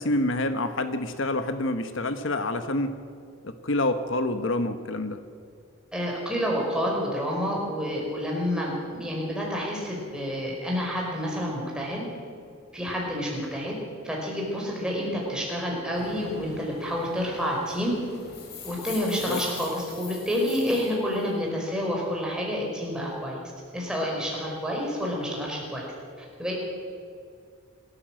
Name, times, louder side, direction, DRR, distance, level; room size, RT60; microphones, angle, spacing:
voice 1, 0.0-3.0 3.4-5.2 19.3-19.4, left 2 dB, 65° left, 9 dB, 1.1 m, -27 dB
voice 2, 5.9-12.1 12.7-13.8 14.0-17.9 18.6-23.4 23.7-25.9 26.2-26.6, equal, 5° right, -3 dB, 5.2 m, -29 dB
sound 1, 15.9-21.3, left 5 dB, 50° left, 3.6 m, -42 dB
25.5 x 14.0 x 7.7 m, 2.3 s
head